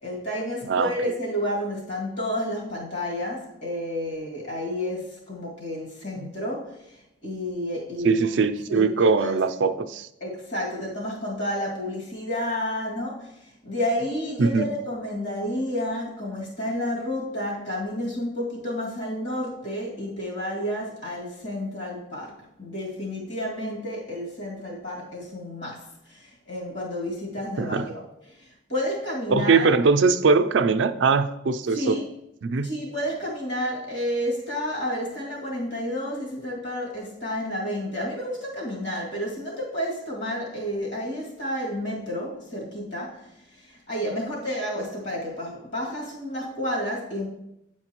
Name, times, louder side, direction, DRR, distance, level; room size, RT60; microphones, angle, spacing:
voice 1, 0.0-8.3 8.7-8.9 9.2-9.4 10.2-28.0 28.3-29.7 31.7-32.1 32.6-47.3, left 1 dB, 75° left, -4 dB, 2.2 m, -31 dB
voice 2, 8.0-10.1 14.4-14.7 27.6-27.9 29.3-32.0 32.4-32.7, right 4 dB, 80° right, 11 dB, 0.4 m, -21 dB
8.6 x 4.5 x 2.9 m, 0.83 s
head